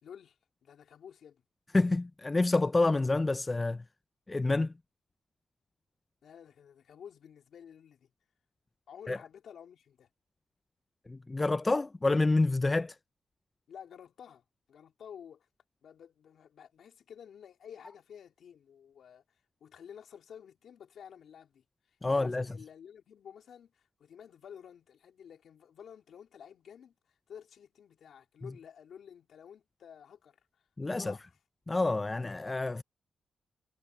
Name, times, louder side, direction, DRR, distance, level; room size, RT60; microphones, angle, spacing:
voice 1, 0.0-1.4 6.2-8.1 8.9-10.1 13.7-15.5 15.8-31.4, left 8 dB, 75° left, 3.3 m, -52 dB
voice 2, 1.7-3.8 4.3-4.7 9.1-9.2 11.1-12.9 22.0-22.4 30.8-31.1 31.7-32.8, left 2 dB, 20° left, 0.3 m, -28 dB
cardioid pair, 100°, 0 cm